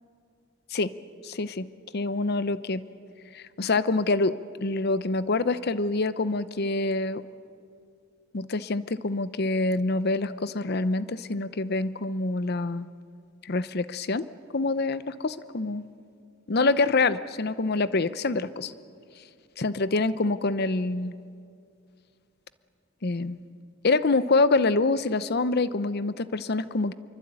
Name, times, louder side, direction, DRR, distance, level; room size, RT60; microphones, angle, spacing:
voice 1, 1.2-2.8 3.3-4.3 4.6-7.2 8.3-12.9 13.4-14.3 14.5-15.8 16.5-18.7 19.6-21.1 23.0-23.4 23.8-26.9, left 3 dB, 50° left, 15 dB, 0.8 m, -26 dB
26.5 x 23.5 x 8.8 m, 2.4 s
head